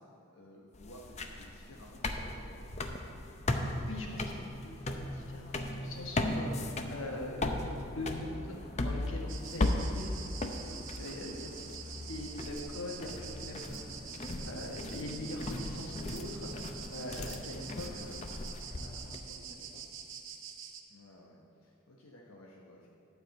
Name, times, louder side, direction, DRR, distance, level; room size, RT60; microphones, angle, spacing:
voice 1, 0.0-2.8 13.7-14.2 20.9-22.9, left 1 dB, 85° left, -3 dB, 1.0 m, -55 dB
sound 1, 0.7-19.2, left 2 dB, 30° left, 0.6 m, -37 dB
voice 2, 3.8-10.1 10.7-11.5 11.8-13.9 14.4-18.2 18.7-19.8, left 1 dB, 65° left, 0 dB, 1.4 m, -43 dB
sound 2, 9.3-20.8, right 7 dB, 60° right, 0.8 m, -46 dB
12.0 x 4.9 x 7.7 m, 2.6 s
head